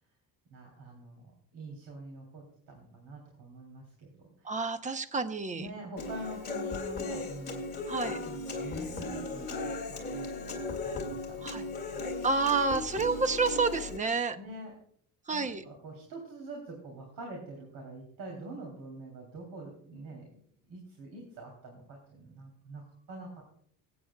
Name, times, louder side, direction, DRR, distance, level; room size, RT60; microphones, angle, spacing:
voice 1, 0.5-4.5 5.6-7.7 7.9-12.1 14.3-14.7 15.3-20.3 20.7-22.8 23.1-23.4, right 2 dB, 90° right, 0 dB, 3.1 m, -45 dB
voice 2, 4.4-5.7 7.9-8.2 11.4-11.6 12.2-14.4 15.3-15.6, right 4 dB, 20° right, 10 dB, 0.7 m, -29 dB
Human voice / Acoustic guitar, 6.0-14.0, left 3 dB, 25° left, 2.3 m, -37 dB
24.0 x 8.7 x 2.3 m, 0.64 s
cardioid pair, 145°, 38 cm